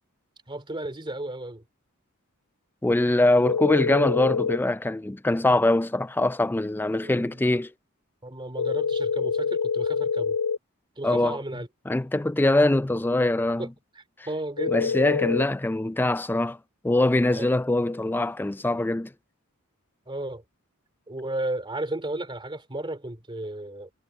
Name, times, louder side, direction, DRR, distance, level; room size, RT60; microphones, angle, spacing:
voice 1, 0.5-1.6 6.9-7.6 8.2-10.4 11.0-11.7 13.6-13.7 13.9-15.0 17.3-17.5 20.1-20.4 21.1-23.9, right 1 dB, 20° right, 2.6 m, -34 dB
voice 2, 2.8-7.7 11.0-11.4 11.9-13.7 14.7-16.6 16.8-19.1, left 2 dB, 10° left, 0.4 m, -23 dB
sound 1, 3.4-4.6 8.6-10.6 14.6-15.5, left 5 dB, 80° left, 0.4 m, -26 dB
head